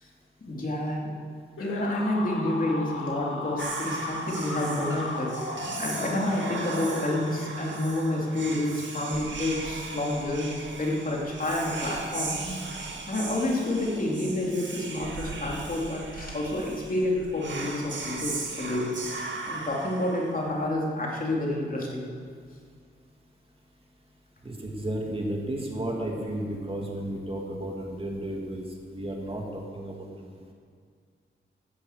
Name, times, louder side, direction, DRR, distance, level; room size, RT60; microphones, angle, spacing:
voice 1, 0.4-1.2 1.6-5.3 5.8-12.6 13.1-18.9 19.5-22.1, left 1 dB, 45° left, -3 dB, 3.5 m, -29 dB
sound 1, 1.6-7.6, left 3 dB, 80° left, 1.8 m, -36 dB
Whispering, 3.6-20.7, right 3 dB, 65° right, 2.2 m, -37 dB
voice 2, 24.4-28.6 28.9-30.5, right 1 dB, 25° right, -1 dB, 2.7 m, -33 dB
13.0 x 11.5 x 8.5 m, 2.1 s
wide cardioid pair, 95°, 21 cm